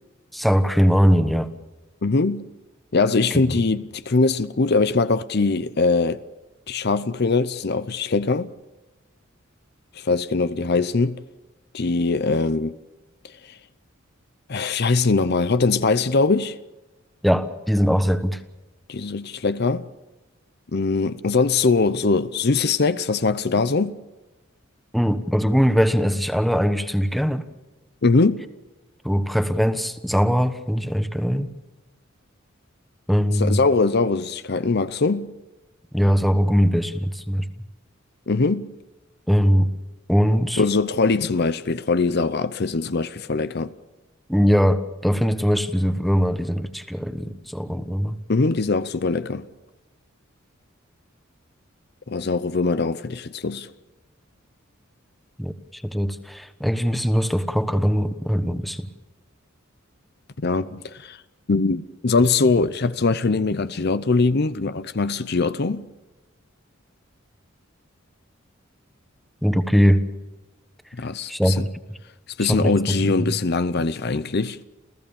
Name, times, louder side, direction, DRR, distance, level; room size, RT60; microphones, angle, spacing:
voice 1, 0.3-1.5 3.5-3.6 17.2-18.4 24.9-27.4 29.0-31.5 33.1-33.6 35.9-37.5 39.3-39.7 40.1-40.6 44.3-48.2 55.4-58.9 69.4-70.0 71.3-71.7 72.5-73.3, equal, ahead, 1.2 m, -21 dB
voice 2, 2.0-2.5 2.9-6.2 6.7-8.5 9.9-11.2 11.7-12.8 13.2-13.6 14.5-16.6 18.9-19.9 20.7-24.0 28.0-28.4 33.4-35.3 38.3-38.7 40.6-43.8 48.3-49.5 52.1-53.7 60.4-61.2 61.5-65.9 70.9-71.6 72.4-74.6, left 3 dB, 50° left, 0.7 m, -22 dB
29.0 x 15.5 x 7.1 m
head